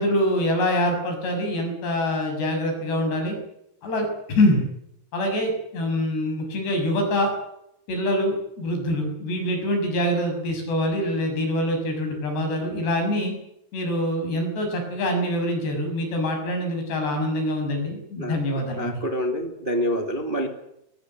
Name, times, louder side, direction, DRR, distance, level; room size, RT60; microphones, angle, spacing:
voice 1, 0.0-3.4 3.8-4.6 5.1-7.3 7.9-13.3 13.7-19.0, left 1 dB, 85° left, 4 dB, 8.6 m, -25 dB
voice 2, 18.8-20.5, equal, 15° right, 4 dB, 2.0 m, -26 dB
22.5 x 20.5 x 8.0 m, 0.79 s
omnidirectional pair, 4.7 m